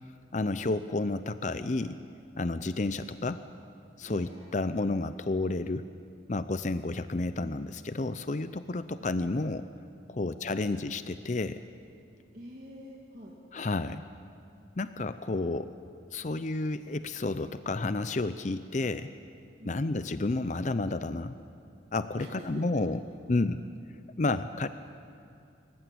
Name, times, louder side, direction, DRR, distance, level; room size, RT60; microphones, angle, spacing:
voice 1, 0.3-2.0 2.4-3.4 4.0-5.9 6.3-9.7 10.1-11.6 13.5-14.0 14.8-15.7 16.1-19.1 19.7-21.4 21.9-23.0 23.3-23.6 24.2-24.7, left 2 dB, 40° left, 12 dB, 0.5 m, -31 dB
sound 1, 4.0-6.0, right 1 dB, 20° right, 5.2 m, -57 dB
voice 2, 4.0-4.3 9.0-9.1 10.2-10.8 12.3-13.4 19.6-19.9 22.1-22.6 23.6-23.8, right 1 dB, 40° right, -4 dB, 2.1 m, -47 dB
26.0 x 15.0 x 8.7 m, 2.5 s
head